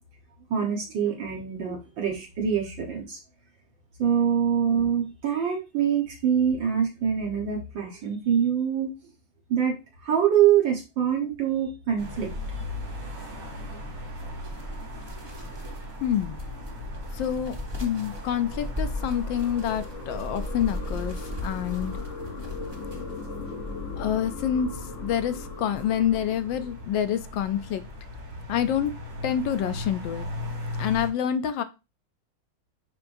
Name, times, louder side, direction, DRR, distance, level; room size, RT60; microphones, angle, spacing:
voice 1, 0.5-3.2 4.0-8.9 9.5-9.8 10.0-12.3, right 8 dB, 65° right, 1.9 m, -24 dB
sound 1, 12.0-31.1, left 1 dB, 80° right, 3.5 m, -38 dB
sound 2, 14.0-23.2, left 2 dB, 30° right, 0.4 m, -38 dB
voice 2, 16.0-16.4 17.1-17.5 17.8-22.0 24.0-24.7 25.0-27.8 28.5-29.0 29.2-30.3 30.8-31.6, left 9 dB, 70° left, 1.2 m, -27 dB
sound 3, 17.0-27.5, left 3 dB, 50° left, 1.0 m, -40 dB
10.5 x 3.6 x 2.6 m
omnidirectional pair, 2.3 m